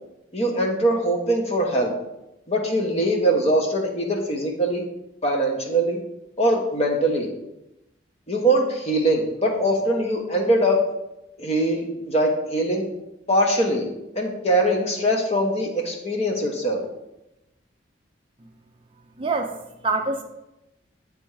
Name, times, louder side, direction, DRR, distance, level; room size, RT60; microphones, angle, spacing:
voice 1, 0.3-1.9 2.5-4.8 5.2-6.0 6.4-7.3 8.3-10.8 11.4-12.9 13.3-13.8 14.1-16.8, right 1 dB, 35° left, 1 dB, 1.1 m, -22 dB
voice 2, 19.2-20.2, right 3 dB, 30° right, 4 dB, 0.5 m, -26 dB
8.8 x 3.5 x 4.7 m, 0.91 s
head